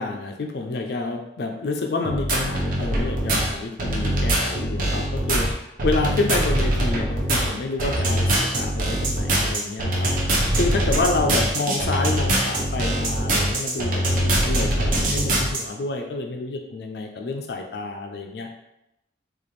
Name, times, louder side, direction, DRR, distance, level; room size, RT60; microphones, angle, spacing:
voice 1, 0.0-5.5 5.8-18.6, left 3 dB, 65° left, 3 dB, 0.4 m, -28 dB
sound 1, 2.0-15.6, right 1 dB, 50° right, 0.7 m, -23 dB
4.1 x 2.5 x 3.2 m, 0.85 s
head